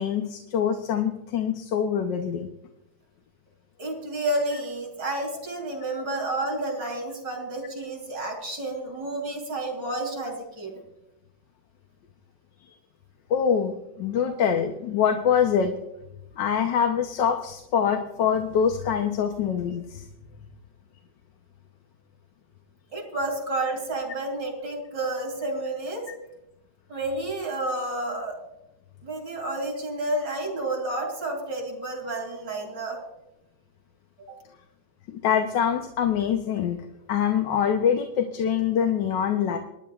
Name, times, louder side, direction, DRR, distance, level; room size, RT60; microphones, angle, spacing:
voice 1, 0.0-2.5 13.3-15.7 16.4-20.0 35.1-36.8 37.1-39.6, left 8 dB, 85° left, 5 dB, 1.6 m, -24 dB
voice 2, 3.8-10.7 22.9-26.0 26.9-28.4 29.0-33.0 34.3-34.4, right 2 dB, 85° right, 3 dB, 3.3 m, -30 dB
24.5 x 10.5 x 2.4 m, 0.88 s
omnidirectional pair, 1.9 m